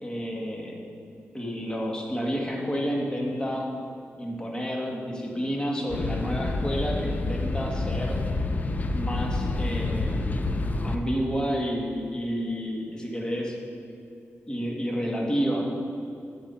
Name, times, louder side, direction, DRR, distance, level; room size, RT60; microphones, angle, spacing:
voice 1, 0.0-0.7 1.3-3.7 4.2-8.2 8.9-10.2 10.8-13.6 14.5-15.7, equal, 15° left, -1 dB, 1.8 m, -30 dB
sound 1, 5.9-11.0, left 2 dB, 35° left, 0.6 m, -28 dB
9.1 x 7.9 x 5.7 m, 2.6 s
wide cardioid pair, 110°, 5 cm